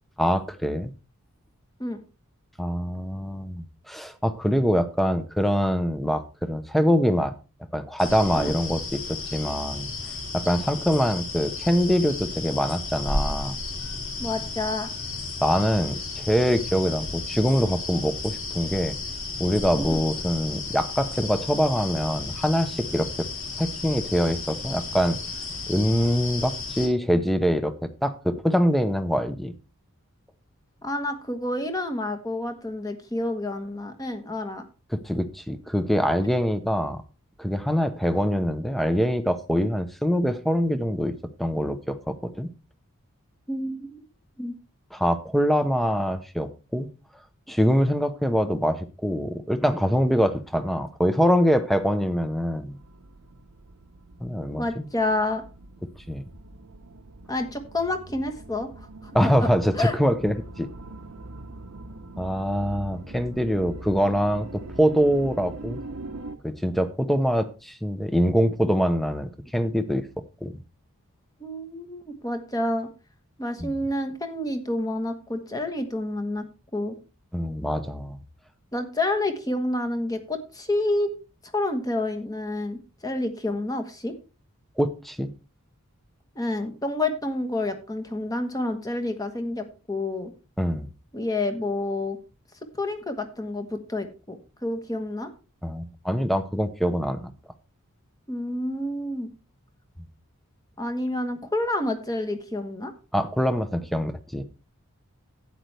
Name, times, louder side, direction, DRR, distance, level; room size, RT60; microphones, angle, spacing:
voice 1, 0.2-0.9 2.6-7.3 7.7-9.9 10.3-13.6 15.4-19.0 19.4-23.3 23.6-25.2 25.7-29.5 34.9-37.0 37.4-41.1 41.4-42.5 44.9-46.9 47.5-52.8 54.2-54.9 56.1-56.2 59.1-60.7 62.2-65.8 66.4-70.1 70.4-70.5 73.6-73.7 77.3-78.2 84.8-85.3 90.6-90.9 95.6-97.3 103.1-104.4, equal, ahead, 11 dB, 0.7 m, -24 dB
sound 1, 8.0-26.9, left 3 dB, 60° left, 2.5 m, -33 dB
voice 2, 14.2-14.9 19.8-20.0 30.8-34.6 43.5-44.0 44.4-44.5 54.6-55.4 57.3-59.5 59.7-60.0 71.4-72.9 73.4-76.5 76.7-76.9 78.7-81.1 81.5-84.1 86.3-90.3 91.1-92.2 92.8-95.3 98.3-99.3 100.8-102.9, left 2 dB, 15° left, 7 dB, 1.3 m, -29 dB
sound 2, 52.7-66.4, right 2 dB, 70° right, 0.8 m, -42 dB
12.0 x 9.3 x 3.4 m, 0.31 s
head